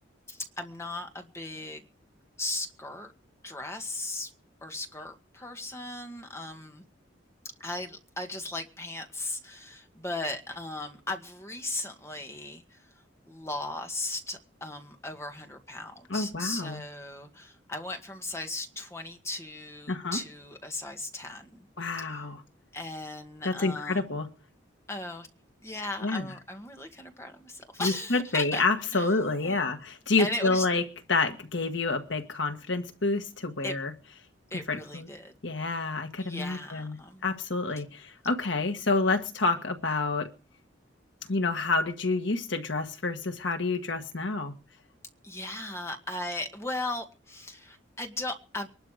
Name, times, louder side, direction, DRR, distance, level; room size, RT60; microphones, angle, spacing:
voice 1, 0.3-1.8 2.4-3.1 3.4-4.3 4.6-6.8 7.6-12.6 13.3-21.7 22.0-22.1 22.7-24.1 24.9-25.3 25.6-28.6 28.9-29.1 29.4-29.6 30.2-30.7 33.6-33.8 34.5-35.3 36.2-37.3 45.2-48.7, left 2 dB, 15° left, 1.8 m, -37 dB
voice 2, 16.1-16.8 19.9-20.2 21.8-22.4 23.4-24.3 26.0-26.3 27.8-30.8 31.1-33.9 34.5-35.1 35.4-37.0 37.2-40.3 41.3-44.5, left 3 dB, 75° left, 1.7 m, -28 dB
23.0 x 12.0 x 5.0 m
head